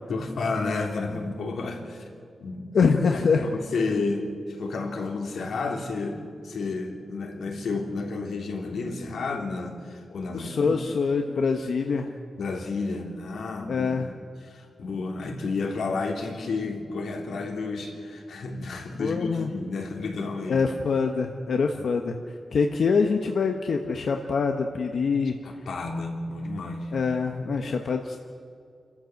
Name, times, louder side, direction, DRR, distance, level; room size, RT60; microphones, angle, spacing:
voice 1, 0.1-2.1 2.4-2.8 3.0-10.8 12.4-14.1 14.4-20.6 25.4-26.9, left 3 dB, 90° left, 1 dB, 3.3 m, -31 dB
voice 2, 2.7-3.5 10.3-12.1 13.7-14.1 19.0-19.5 20.5-25.4 26.9-28.2, left 5 dB, 60° left, 4 dB, 1.1 m, -25 dB
29.0 x 13.5 x 7.9 m, 2.4 s
wide cardioid pair, 165°, 0 cm